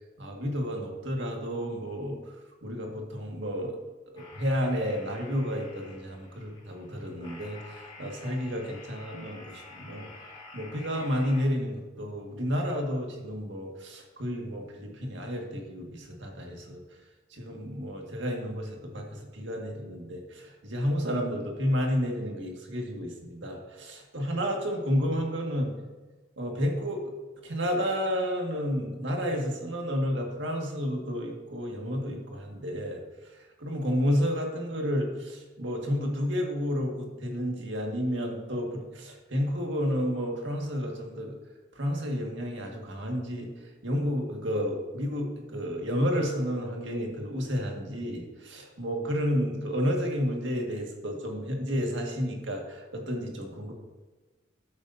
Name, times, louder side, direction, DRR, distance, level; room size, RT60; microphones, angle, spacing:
voice 1, 0.2-2.2 2.6-3.8 4.1-10.1 10.5-16.8 17.3-25.7 26.4-27.0 27.4-33.0 33.3-41.4 41.8-43.5 43.8-53.7, equal, 70° right, 1 dB, 1.9 m, -31 dB
sound 1, 4.1-11.4, left 3 dB, 25° left, 3.5 m, -49 dB
13.5 x 8.5 x 2.8 m, 1.3 s
head